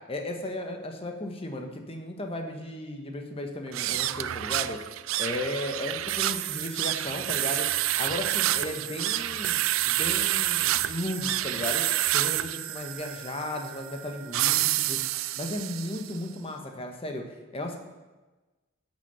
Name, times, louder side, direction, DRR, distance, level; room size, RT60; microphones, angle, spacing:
voice 1, 0.1-4.8 5.2-7.7 8.0-11.8 12.1-15.0 15.4-17.2 17.5-17.8, left 1 dB, 30° left, 3 dB, 1.2 m, -35 dB
sound 1, 3.7-16.2, right 14 dB, 80° right, 0.4 m, -28 dB
11.0 x 6.2 x 6.9 m, 1.2 s
head